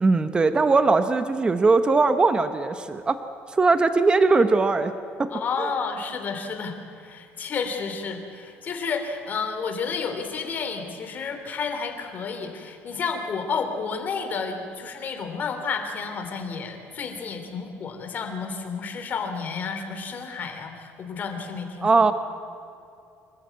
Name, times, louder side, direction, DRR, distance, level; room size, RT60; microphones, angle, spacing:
voice 1, 0.0-3.2 3.5-4.9 5.2-5.3 5.6-5.7 21.8-22.1, right 3 dB, 20° right, 10 dB, 1.0 m, -20 dB
voice 2, 5.3-22.0, left 5 dB, 40° left, 5 dB, 3.4 m, -31 dB
26.0 x 14.0 x 9.4 m, 2.5 s
cardioid pair, 120°, 5 cm